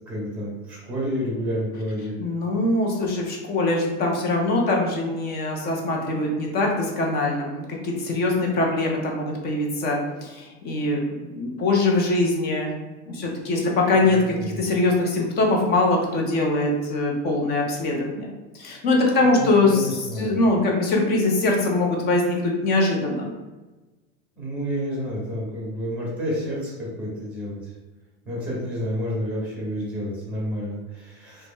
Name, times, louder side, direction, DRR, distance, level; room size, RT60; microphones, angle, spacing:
voice 1, 0.1-2.2 14.1-14.6 19.2-20.4 24.4-27.7 28.2-31.5, equal, 5° right, -6 dB, 1.1 m, -30 dB
voice 2, 2.2-12.7 13.1-23.3, left 2 dB, 30° left, 0 dB, 0.5 m, -23 dB
2.4 x 2.1 x 3.5 m, 1.2 s
supercardioid pair, 145°, 35 cm